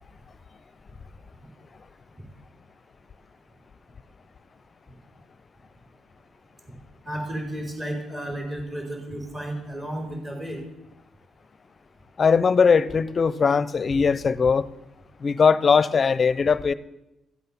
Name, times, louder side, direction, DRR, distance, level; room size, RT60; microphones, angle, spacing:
voice 1, 7.0-10.6, right 1 dB, 25° right, 5.1 m, -33 dB
voice 2, 12.2-14.7 15.2-16.7, left 5 dB, 40° left, 0.7 m, -20 dB
15.0 x 8.1 x 7.1 m
cardioid pair, 90°, 0 cm